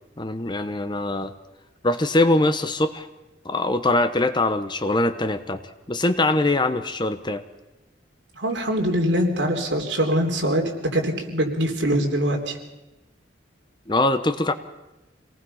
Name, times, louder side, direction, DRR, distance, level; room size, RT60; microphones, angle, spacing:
voice 1, 0.2-1.3 1.8-3.1 3.4-5.6 5.9-7.4 13.9-14.5, left 2 dB, 25° left, 10 dB, 0.9 m, -22 dB
voice 2, 8.4-10.6 10.9-12.6, equal, 65° right, 2 dB, 3.6 m, -23 dB
27.0 x 19.0 x 5.6 m, 1.0 s
head